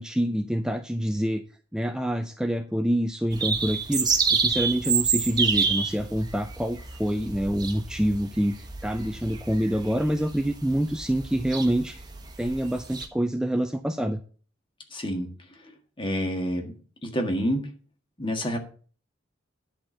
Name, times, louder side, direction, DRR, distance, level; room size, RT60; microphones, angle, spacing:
voice 1, 0.0-1.4 1.7-12.0 12.4-14.2, equal, 5° right, 7 dB, 0.4 m, -26 dB
sound 1, 3.3-13.1, right 5 dB, 20° right, 1.1 m, -29 dB
voice 2, 14.9-15.3 16.0-16.7 17.0-17.7 18.2-18.6, equal, 25° left, 3 dB, 1.7 m, -28 dB
10.5 x 4.3 x 7.6 m, 0.42 s
head